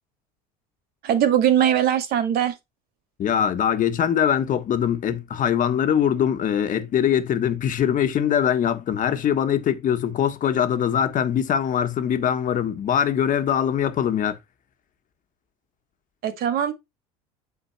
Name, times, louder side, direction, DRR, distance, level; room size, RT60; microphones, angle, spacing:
voice 1, 1.0-2.6 16.2-16.7, right 10 dB, 55° right, 1.9 m, -20 dB
voice 2, 3.2-14.4, left 9 dB, 45° left, 1.5 m, -22 dB
8.1 x 4.6 x 4.3 m
hypercardioid pair, 75°, 18 cm